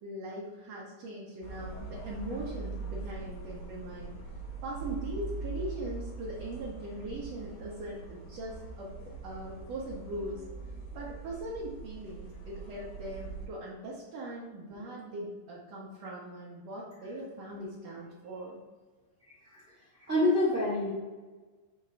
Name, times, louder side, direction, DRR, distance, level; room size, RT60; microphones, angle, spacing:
voice 1, 0.0-4.1 4.6-10.4 10.9-18.6, right 1 dB, 65° right, -5 dB, 1.7 m, -40 dB
sound 1, 1.4-13.5, right 4 dB, 75° left, 3.5 m, -42 dB
voice 2, 20.0-20.9, left 1 dB, 45° right, -9 dB, 1.0 m, -26 dB
7.1 x 3.7 x 4.4 m, 1.3 s
omnidirectional pair, 4.3 m